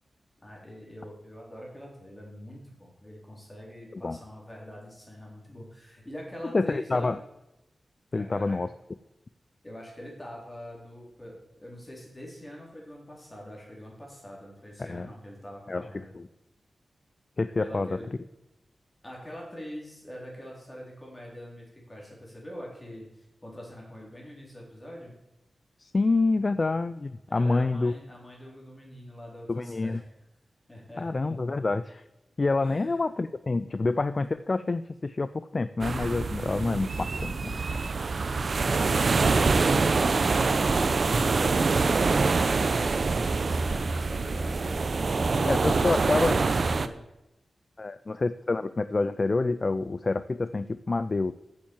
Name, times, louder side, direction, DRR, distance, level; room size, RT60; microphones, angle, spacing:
voice 1, 0.4-7.1 8.1-8.6 9.6-16.1 17.6-18.1 19.0-25.1 27.3-30.1 30.7-31.1 32.6-33.1 38.6-47.0, equal, 15° left, -2 dB, 3.8 m, -44 dB
voice 2, 6.5-7.2 8.1-8.7 14.8-15.1 15.7-16.3 17.4-18.0 25.8-27.9 29.5-30.0 31.0-32.0 32.4-37.6 45.5-46.4 47.8-51.3, left 3 dB, 35° left, 13 dB, 0.3 m, -27 dB
sound 1, 35.8-46.9, right 4 dB, 50° right, 0.6 m, -25 dB
9.0 x 7.5 x 7.2 m, 0.91 s
wide cardioid pair, 120°, 0 cm